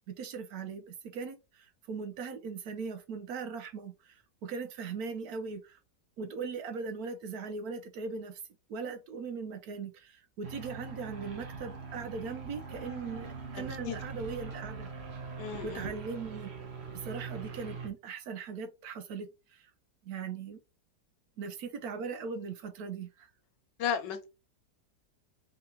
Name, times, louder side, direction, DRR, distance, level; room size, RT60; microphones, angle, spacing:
voice 1, 0.1-5.8 6.2-8.4 8.7-14.9 15.6-16.5 16.9-19.7 20.0-20.6 21.4-23.3, right 5 dB, 70° right, 1.0 m, -39 dB
sound 1, 10.4-17.9, right 5 dB, 45° right, 0.9 m, -42 dB
voice 2, 13.6-14.0 15.4-15.9 23.8-24.3, left 8 dB, 80° left, 1.4 m, -35 dB
3.7 x 3.4 x 2.8 m
omnidirectional pair, 1.9 m